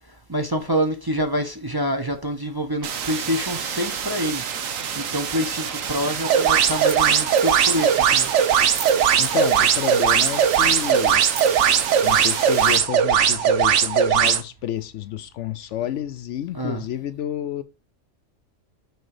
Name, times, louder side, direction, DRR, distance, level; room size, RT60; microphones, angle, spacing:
voice 1, 0.3-4.4 5.0-8.3 15.8-15.9 16.5-16.9, equal, 20° right, 0.8 m, -26 dB
sound 1, 2.8-12.8, right 7 dB, 85° right, 1.3 m, -30 dB
sound 2, 6.2-14.4, right 8 dB, 65° right, 1.0 m, -19 dB
sound 3, 6.9-7.0 7.2-8.0 8.5-9.7 10.1-11.8, right 5 dB, 40° right, 1.0 m, -38 dB
voice 2, 9.2-11.2 12.0-17.6, left 11 dB, 70° left, 0.8 m, -30 dB
6.3 x 4.5 x 4.8 m
omnidirectional pair, 1.4 m